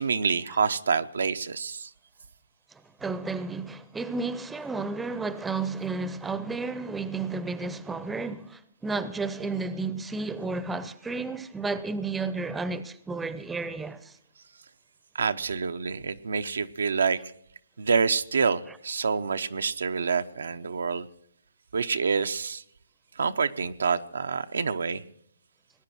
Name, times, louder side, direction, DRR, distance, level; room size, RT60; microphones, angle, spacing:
voice 1, 0.0-1.9 15.1-17.2 17.8-21.1 21.7-22.6 23.2-25.0, right 5 dB, 80° right, 0.7 m, -27 dB
voice 2, 2.7-14.2, right 3 dB, 5° right, 0.6 m, -32 dB
19.0 x 9.8 x 6.2 m
hypercardioid pair, 145°, 0 cm